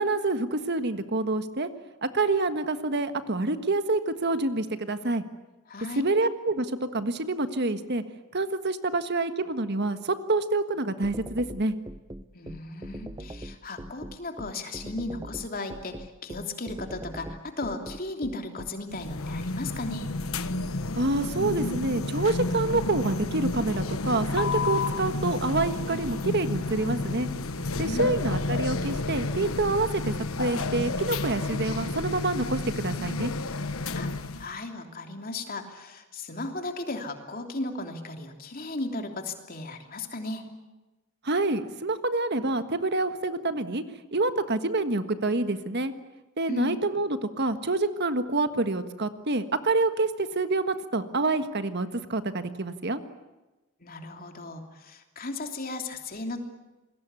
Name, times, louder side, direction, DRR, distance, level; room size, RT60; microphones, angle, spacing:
voice 1, 0.0-1.7 2.0-5.2 5.9-8.0 8.3-11.7 21.0-27.3 27.8-33.3 41.2-43.8 44.1-45.9 46.4-53.0, right 2 dB, 50° right, 10 dB, 1.5 m, -27 dB
voice 2, 5.7-6.0 12.3-20.1 27.8-28.2 33.9-34.1 34.4-40.5 46.5-46.8 53.8-56.4, left 2 dB, 45° left, 5 dB, 3.1 m, -36 dB
sound 1, 11.0-18.7, right 1 dB, 20° right, 0.8 m, -40 dB
sound 2, 18.9-34.5, left 3 dB, 80° left, 1.3 m, -31 dB
28.0 x 21.5 x 8.4 m, 1.1 s
head